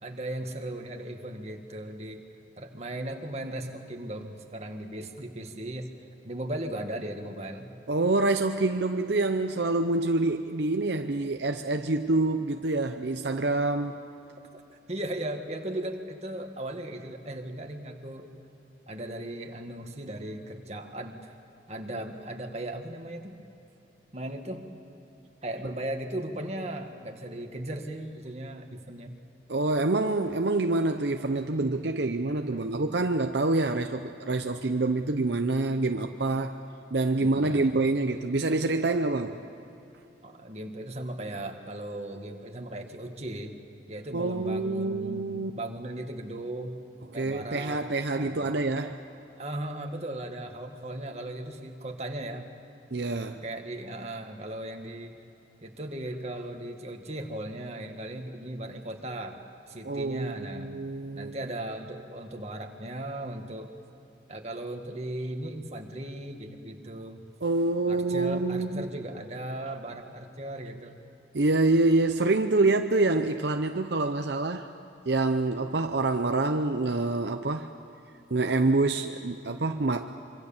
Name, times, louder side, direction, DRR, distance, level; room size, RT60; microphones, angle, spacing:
voice 1, 0.0-2.2 2.6-5.9 6.2-7.7 14.9-18.3 18.9-21.3 21.7-23.4 24.1-24.6 25.4-29.1 32.5-32.7 37.2-37.8 40.2-43.5 43.9-46.7 47.1-47.8 48.2-48.6 49.4-52.5 53.4-55.2 55.6-59.4 59.7-60.8 61.1-63.7 64.3-67.2 67.9-71.0, right 1 dB, 35° right, 3 dB, 1.9 m, -37 dB
voice 2, 7.9-14.0 29.5-36.5 36.9-39.4 44.1-45.5 47.1-49.0 52.9-53.4 59.8-61.4 67.4-68.9 71.3-74.7 75.1-77.7 78.3-80.1, right 2 dB, 65° right, 6 dB, 0.8 m, -26 dB
26.0 x 25.0 x 7.3 m, 3.0 s
head